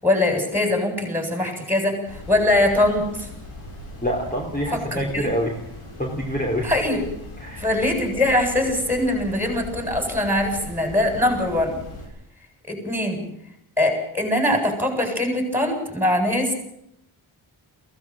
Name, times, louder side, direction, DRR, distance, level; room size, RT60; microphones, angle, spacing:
voice 1, 0.0-3.3 4.7-5.3 6.6-7.0 7.6-11.8 12.7-13.2 13.8-16.5, left 1 dB, 5° right, 3 dB, 7.6 m, -22 dB
sound 1, 2.1-12.1, left 1 dB, 85° left, 7.7 m, -39 dB
voice 2, 4.0-5.6 6.0-6.7 7.4-7.7, equal, 15° left, -1 dB, 3.6 m, -26 dB
23.0 x 17.5 x 7.7 m, 0.76 s
wide cardioid pair, 120°, 50 cm